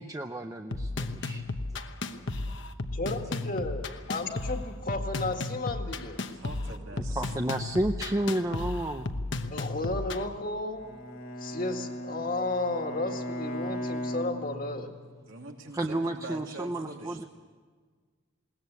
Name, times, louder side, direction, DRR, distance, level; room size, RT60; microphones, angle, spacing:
voice 1, 0.0-1.8 7.2-9.1 15.7-17.2, right 1 dB, 15° right, 5 dB, 0.5 m, -31 dB
sound 1, 0.7-10.2, left 2 dB, 60° left, 1.0 m, -34 dB
voice 2, 2.9-6.2 9.5-10.9 11.4-14.9, left 2 dB, 45° left, 4 dB, 1.8 m, -33 dB
voice 3, 6.3-7.5 15.3-17.3, right 2 dB, 75° right, 1 dB, 2.9 m, -44 dB
Bowed string instrument, 10.8-15.1, equal, 85° left, 2.2 m, -37 dB
21.0 x 18.0 x 8.2 m, 1.5 s
head